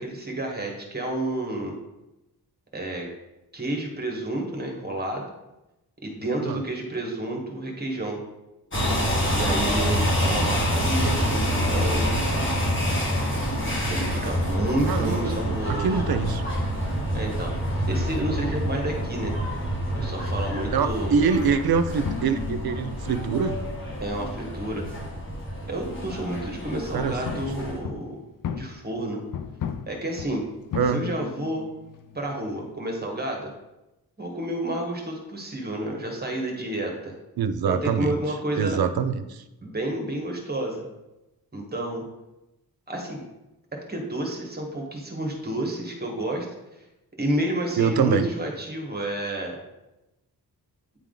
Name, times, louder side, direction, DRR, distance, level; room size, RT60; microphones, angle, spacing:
voice 1, 0.0-1.7 2.7-3.1 3.5-5.3 6.0-8.2 9.3-12.1 13.9-15.9 17.1-17.6 17.9-19.3 20.0-21.1 24.0-24.9 25.7-28.2 28.5-29.2 29.9-30.4 30.9-31.7 32.1-33.5 34.2-37.1 37.7-38.8 39.6-40.8 41.5-42.0 42.9-43.2 43.7-46.5 47.2-49.6, right 1 dB, 25° right, 0 dB, 1.3 m, -30 dB
sound 1, 8.7-27.8, equal, 30° left, 1.6 m, -27 dB
voice 2, 14.9-16.4 20.7-23.6 26.9-27.4 30.7-31.1 37.4-38.2 38.5-39.4 47.8-48.3, right 6 dB, 70° right, 10 dB, 0.6 m, -24 dB
sound 2, 22.0-26.4 26.6-32.7, left 8 dB, 60° left, 0.5 m, -37 dB
9.4 x 3.5 x 3.8 m, 0.97 s
wide cardioid pair, 140°, 38 cm